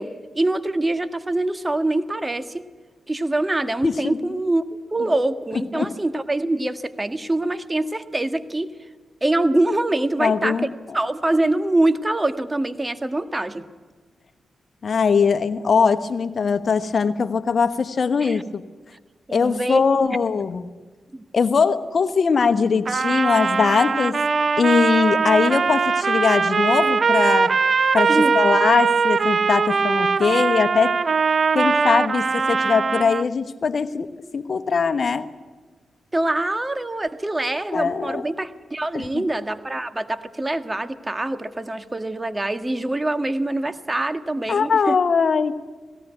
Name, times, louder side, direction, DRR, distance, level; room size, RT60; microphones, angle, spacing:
voice 1, 0.0-2.6 3.1-8.7 9.2-10.6 10.9-13.7 18.2-18.4 19.3-19.8 21.1-21.2 28.1-28.4 36.1-45.0, right 2 dB, 25° right, 10 dB, 1.6 m, -24 dB
voice 2, 3.8-4.2 5.5-5.9 10.2-10.7 14.8-18.6 19.3-20.6 21.3-24.2 24.6-27.6 27.9-30.9 31.5-35.3 37.7-38.2 38.9-39.3 44.5-45.6, left 5 dB, 60° left, 12 dB, 1.1 m, -21 dB
Trumpet, 22.8-33.3, right 5 dB, 50° right, 0.8 m, -21 dB
19.0 x 17.5 x 9.4 m, 1.4 s
supercardioid pair, 40°, 0 cm